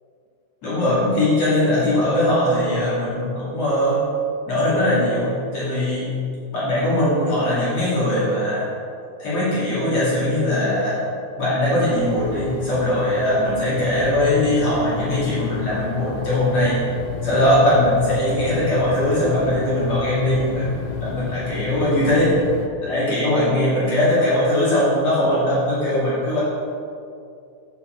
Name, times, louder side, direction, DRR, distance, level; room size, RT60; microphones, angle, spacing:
voice 1, 0.6-4.0 4.5-6.2 6.5-8.7 9.2-11.0 11.4-16.8 17.2-22.4 22.8-26.4, left 1 dB, 45° left, -9 dB, 2.5 m, -20 dB
sound 1, 12.0-22.7, left 6 dB, 90° left, 3.3 m, -31 dB
8.4 x 7.4 x 4.5 m, 2.5 s
omnidirectional pair, 5.8 m